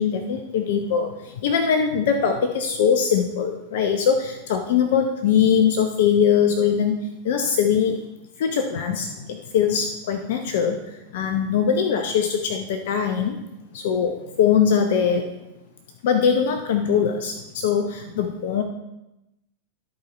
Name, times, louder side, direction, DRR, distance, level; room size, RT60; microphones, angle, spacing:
voice 1, 0.0-7.0 7.2-7.9 8.4-13.4 13.7-15.3 16.0-18.6, left 7 dB, 55° left, 6 dB, 0.7 m, -22 dB
13.0 x 4.5 x 3.9 m, 0.93 s
figure-of-eight pair, 90°, 0 cm